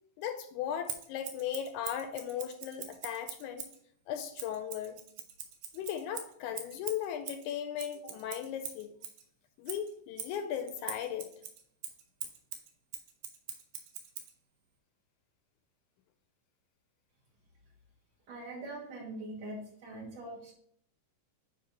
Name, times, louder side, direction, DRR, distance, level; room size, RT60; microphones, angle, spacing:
voice 1, 0.2-3.7 4.1-5.0 5.7-8.9 9.6-11.3, left 9 dB, 80° left, 8 dB, 1.9 m, -37 dB
Scissors, 0.9-3.8 4.4-9.2 9.7-14.3, right 8 dB, 85° right, 2.4 m, -43 dB
voice 2, 18.3-20.5, right 1 dB, 55° right, -3 dB, 2.8 m, -43 dB
9.5 x 3.5 x 4.0 m, 0.65 s
omnidirectional pair, 3.6 m